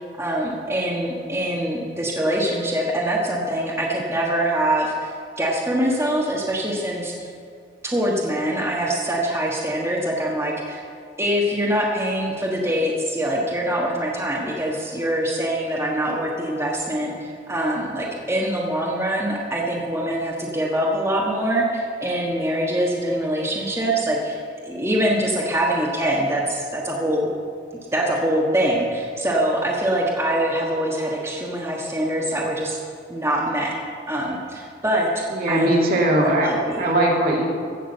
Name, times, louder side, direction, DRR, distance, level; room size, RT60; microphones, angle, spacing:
voice 1, 0.0-7.3 7.8-10.8 11.2-27.3 27.9-32.8 33.1-33.7 34.1-35.7 36.2-36.9, right 1 dB, 15° right, -3 dB, 1.3 m, -24 dB
voice 2, 35.3-36.5 36.8-37.5, right 1 dB, 55° right, -2 dB, 2.3 m, -19 dB
15.5 x 6.2 x 7.8 m, 2.3 s
head